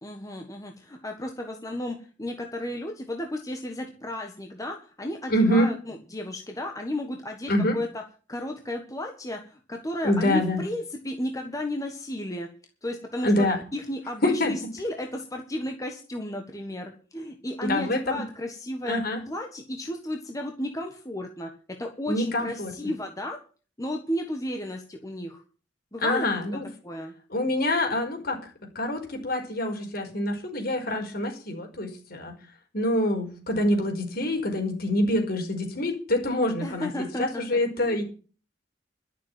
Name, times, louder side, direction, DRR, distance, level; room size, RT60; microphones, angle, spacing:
voice 1, 0.0-8.0 8.3-12.5 12.8-23.4 23.8-25.4 25.9-26.4 26.8-27.1 36.6-38.0, left 1 dB, 20° left, 3 dB, 1.5 m, -33 dB
voice 2, 5.3-5.7 7.5-7.8 10.0-10.6 13.2-13.6 14.2-14.5 17.6-18.2 18.8-19.2 22.1-22.7 26.0-26.7 27.3-28.4 28.7-32.3 32.7-38.0, left 1 dB, 55° left, 3 dB, 5.0 m, -25 dB
12.0 x 7.2 x 9.2 m, 0.38 s
head